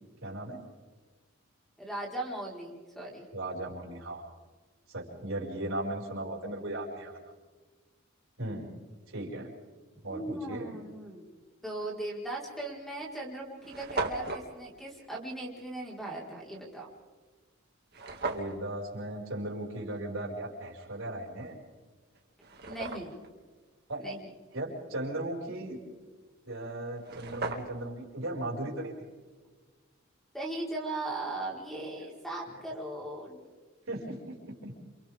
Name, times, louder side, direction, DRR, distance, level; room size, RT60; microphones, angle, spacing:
voice 1, 0.2-0.6 3.3-4.3 4.9-7.2 8.4-8.8 9.1-9.5 10.0-10.8 18.3-21.5 23.9-24.1 24.5-25.8 26.5-28.9 33.9-34.2 34.6-34.7, right 1 dB, 75° right, -3 dB, 5.8 m, -37 dB
voice 2, 1.8-3.2 10.1-16.9 22.7-23.2 24.0-24.2 30.3-33.4, right 2 dB, ahead, -3 dB, 4.6 m, -38 dB
sound 1, 12.1-12.3 13.0-13.1 13.3-13.4 13.6-14.5 17.9-18.6 21.5-21.6 22.1-23.3 26.6-26.7 26.9-27.9, right 3 dB, 50° right, 2.4 m, -36 dB
29.5 x 28.0 x 3.7 m, 1.4 s
head